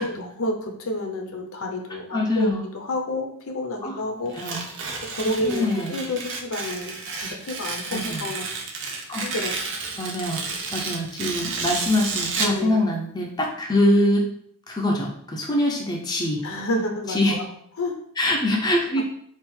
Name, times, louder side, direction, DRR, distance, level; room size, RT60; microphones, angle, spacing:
voice 1, 0.0-4.3 5.0-8.5 9.2-9.5 12.4-12.8 16.4-17.4 17.8-18.0, left 1 dB, 70° left, 2 dB, 0.7 m, -29 dB
voice 2, 2.1-2.6 3.8-4.0 4.3-4.6 5.4-5.9 7.9-8.2 9.1-9.3 10.0-10.4 10.7-14.3 14.7-16.4 17.1-17.3 18.2-19.0, left 1 dB, 20° left, -1 dB, 0.6 m, -23 dB
Tearing, 4.3-12.6, right 4 dB, 60° right, 0.6 m, -31 dB
3.7 x 2.4 x 4.3 m, 0.66 s
head